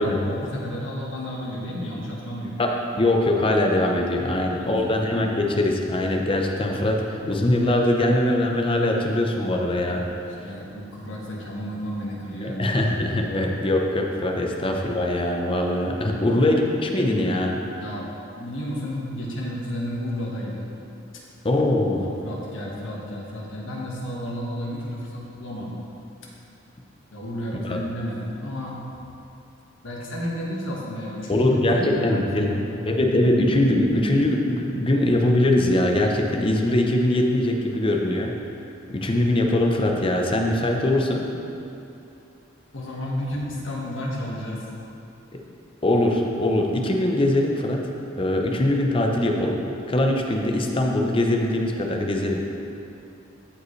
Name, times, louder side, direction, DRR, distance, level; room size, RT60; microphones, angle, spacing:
voice 1, 0.0-2.6 4.3-5.0 10.4-12.7 16.1-16.4 17.8-18.0 18.3-20.7 22.0-25.8 27.1-29.0 29.8-32.7 42.7-44.6, equal, 75° left, -3 dB, 1.5 m, -32 dB
voice 2, 2.6-10.0 12.4-17.6 21.4-22.0 27.6-27.8 31.3-32.5 32.9-38.3 38.9-41.3 45.8-47.9 48.2-52.4, left 1 dB, 25° left, 1 dB, 0.7 m, -22 dB
14.5 x 5.0 x 3.2 m, 2.7 s
head